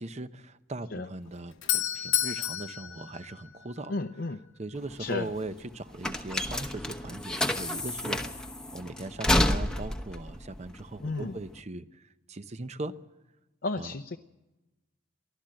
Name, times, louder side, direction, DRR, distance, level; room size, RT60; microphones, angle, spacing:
voice 1, 0.0-3.9 4.6-8.2 8.7-12.0 12.3-12.9 13.8-13.9, right 2 dB, 35° right, 12 dB, 0.7 m, -39 dB
Doorbell, 1.2-4.1, left 12 dB, 85° left, 1.0 m, -31 dB
voice 2, 3.9-4.4 5.0-5.3 11.0-11.4 13.6-14.2, left 3 dB, 55° left, 6 dB, 0.7 m, -33 dB
sound 1, 4.8-11.6, left 1 dB, 5° left, 1.0 m, -30 dB
23.5 x 15.0 x 7.7 m, 1.1 s
head